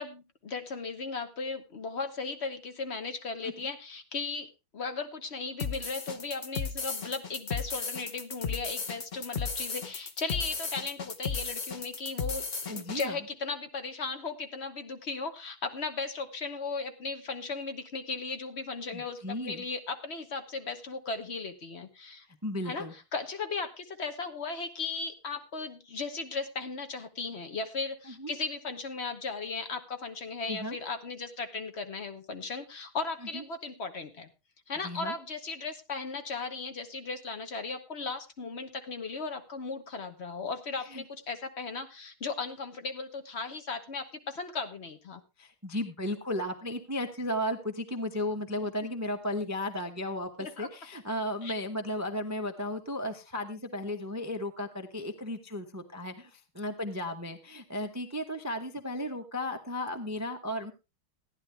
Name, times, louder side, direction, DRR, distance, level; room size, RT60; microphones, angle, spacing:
voice 1, 0.0-12.4 12.7-22.3 22.6-34.3 34.7-45.2 50.4-50.7 51.4-51.5, left 4 dB, 40° left, 7 dB, 1.1 m, -36 dB
sound 1, 5.6-13.1, left 5 dB, 75° left, 0.4 m, -35 dB
voice 2, 12.7-13.2 18.9-19.6 22.4-22.9 28.1-28.3 30.5-30.8 33.3-33.4 34.8-35.1 40.8-41.0 45.4-60.7, left 1 dB, 15° right, 6 dB, 0.5 m, -35 dB
15.5 x 10.5 x 3.4 m, 0.26 s
omnidirectional pair, 2.3 m